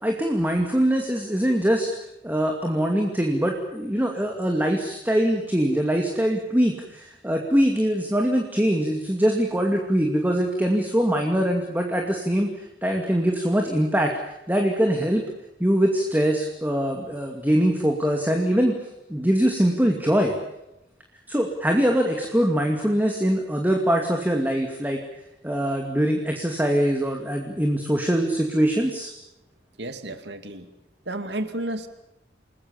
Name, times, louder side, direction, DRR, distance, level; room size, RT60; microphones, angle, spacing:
voice 1, 0.0-1.9 2.2-12.5 12.8-15.2 15.6-18.7 19.1-20.3 21.3-25.0 25.4-29.1, equal, 10° right, 2 dB, 2.4 m, -23 dB
voice 2, 29.8-30.7 31.1-31.9, right 1 dB, 75° right, 9 dB, 2.4 m, -32 dB
29.5 x 20.0 x 7.3 m, 0.88 s
head